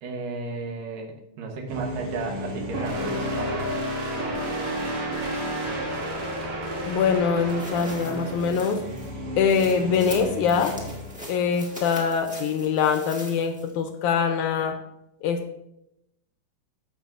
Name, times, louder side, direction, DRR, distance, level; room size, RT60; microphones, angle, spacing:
voice 1, 0.0-3.8, right 3 dB, 80° right, 2 dB, 2.9 m, -34 dB
sound 1, 1.7-12.0, equal, 60° right, 3.2 m, -32 dB
voice 2, 6.9-8.8 9.4-10.8 11.3-14.8 15.2-15.6, left 6 dB, 75° left, 7 dB, 1.9 m, -23 dB
sound 2, 7.5-13.8 14.2-14.3, equal, 10° right, 0.3 m, -43 dB
14.5 x 6.0 x 2.6 m, 0.82 s
omnidirectional pair, 3.8 m